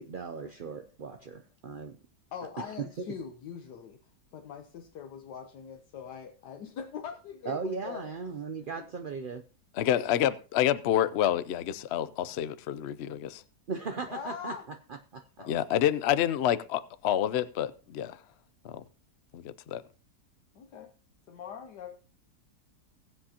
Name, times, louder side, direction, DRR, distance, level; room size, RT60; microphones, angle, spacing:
voice 1, 0.0-2.0 2.6-2.7 7.5-9.4 13.7-14.6 15.1-15.5, right 4 dB, 65° right, 0.5 m, -37 dB
voice 2, 2.3-4.0 4.3-8.1 8.8-8.9 10.0-10.1 14.1-14.7 15.4-15.8 20.5-20.9 21.3-21.9, left 7 dB, 80° left, 1.5 m, -42 dB
voice 3, 9.8-13.4 15.5-18.2 18.6-18.8 19.3-19.8, left 11 dB, 65° left, 0.6 m, -28 dB
21.0 x 7.6 x 2.9 m
omnidirectional pair, 1.8 m